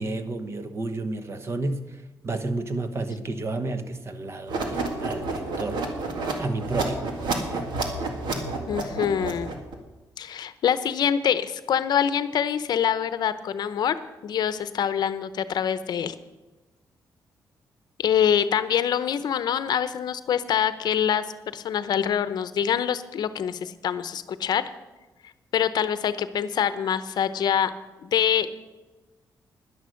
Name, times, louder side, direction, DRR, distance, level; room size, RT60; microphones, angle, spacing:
voice 1, 0.0-5.9 6.4-7.7, right 2 dB, 35° right, 9 dB, 1.1 m, -31 dB
sound 1, 4.5-9.7, right 3 dB, 90° right, 2.0 m, -30 dB
voice 2, 8.7-9.5 10.2-14.0 14.2-16.1 18.0-21.2 21.5-24.6 25.5-27.7 28.0-28.5, left 9 dB, 70° left, 13 dB, 0.7 m, -25 dB
11.0 x 10.5 x 6.4 m, 1.1 s
cardioid pair, 115°, 7 cm